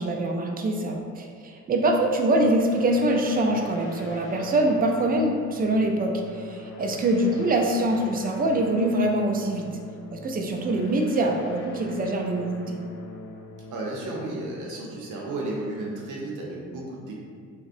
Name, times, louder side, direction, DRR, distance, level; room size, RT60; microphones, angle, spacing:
voice 1, 0.0-9.7 10.1-12.8, right 1 dB, 30° right, 1 dB, 0.4 m, -24 dB
sound 1, 1.9-15.3, left 2 dB, 45° left, 0.4 m, -42 dB
voice 2, 13.7-17.2, right 2 dB, 80° right, -3 dB, 0.6 m, -33 dB
3.4 x 2.1 x 2.5 m, 2.1 s
cardioid pair, 90°, 30 cm